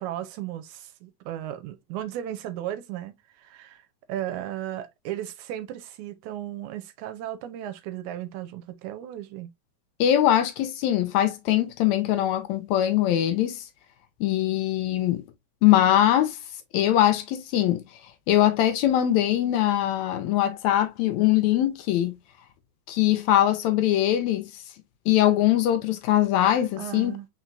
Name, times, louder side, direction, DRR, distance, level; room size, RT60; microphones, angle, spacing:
voice 1, 0.0-9.5 26.8-27.3, right 12 dB, 80° right, 2.0 m, -35 dB
voice 2, 10.0-13.7 14.2-15.2 15.6-16.4 16.7-17.8 18.3-22.2 22.9-24.5 25.1-27.2, left 12 dB, 80° left, 1.8 m, -22 dB
4.5 x 4.3 x 2.5 m
omnidirectional pair, 3.6 m